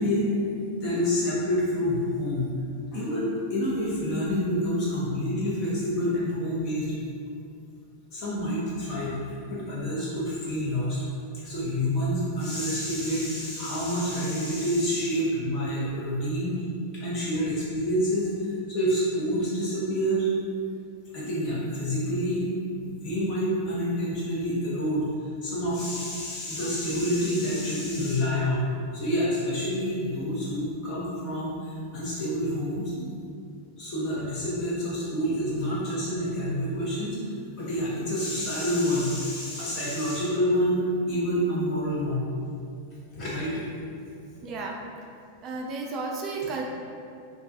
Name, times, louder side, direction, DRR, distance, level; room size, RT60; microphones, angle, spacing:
voice 1, 0.0-2.5 2.9-6.9 8.1-9.2 9.5-11.0 11.3-16.6 16.9-20.3 21.1-22.4 22.8-25.0 25.4-28.7 28.9-32.9 33.8-37.2 37.5-40.8 41.1-42.3 43.1-43.7, equal, 45° left, -7 dB, 0.8 m, -28 dB
voice 2, 44.4-44.8 45.4-46.7, right 3 dB, 35° right, -1 dB, 0.3 m, -33 dB
2.3 x 2.2 x 2.6 m, 2.4 s
figure-of-eight pair, 95°, 0 cm